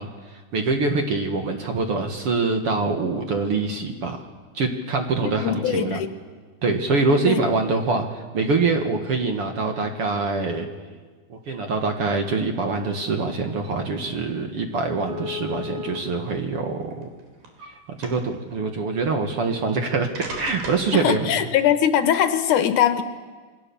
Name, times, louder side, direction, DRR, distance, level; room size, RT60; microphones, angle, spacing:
voice 1, 0.0-4.2 4.5-6.0 6.6-10.7 11.3-17.1 17.9-21.3, right 3 dB, 50° right, 4 dB, 2.2 m, -24 dB
voice 2, 5.3-6.1 7.3-7.4 20.9-23.0, left 9 dB, 70° left, 9 dB, 2.4 m, -21 dB
sound 1, 14.3-14.5 15.0-16.0 16.8-17.7 18.0-18.4 19.5-19.6 20.1-20.9, left 2 dB, 85° right, 5.2 m, -35 dB
27.5 x 22.5 x 7.1 m, 1.4 s
omnidirectional pair, 3.9 m